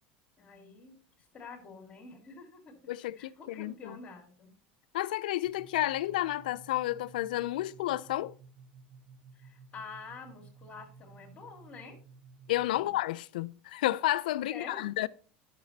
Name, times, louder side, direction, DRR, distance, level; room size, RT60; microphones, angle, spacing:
voice 1, 0.4-0.9 1.3-2.8 3.2-4.5 9.4-12.0 12.8-12.9 14.5-14.8, left 4 dB, 30° left, 2.6 m, -47 dB
voice 2, 2.9-4.0 4.9-8.3 12.5-15.1, left 15 dB, 90° left, 0.4 m, -31 dB
sound 1, 5.4-13.0, right 4 dB, 80° right, 2.8 m, -55 dB
11.0 x 6.7 x 2.7 m
supercardioid pair, 110°, 5 cm